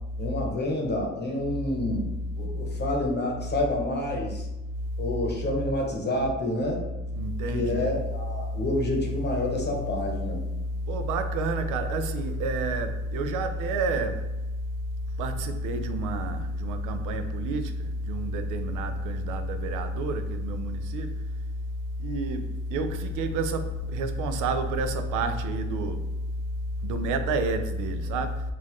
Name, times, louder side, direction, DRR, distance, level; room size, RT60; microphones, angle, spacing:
voice 1, 0.2-4.5 5.0-6.8 7.5-10.4, left 1 dB, 35° left, 0.9 m, -28 dB
voice 2, 7.2-8.0 10.8-14.3 15.2-21.1 22.0-26.0 26.8-28.4, right 2 dB, 90° right, 0.5 m, -29 dB
3.9 x 2.5 x 3.0 m
cardioid pair, 90°, 30 cm